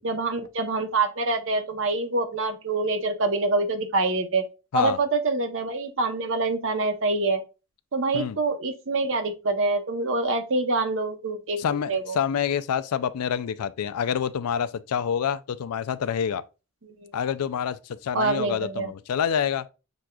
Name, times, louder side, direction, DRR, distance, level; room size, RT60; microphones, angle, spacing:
voice 1, 0.0-4.4 4.7-7.4 7.9-12.2 16.8-17.1 18.1-18.9, right 3 dB, 55° right, 0.8 m, -26 dB
voice 2, 11.6-16.4 17.1-19.7, left 8 dB, 90° left, 0.4 m, -27 dB
6.2 x 3.6 x 2.3 m
head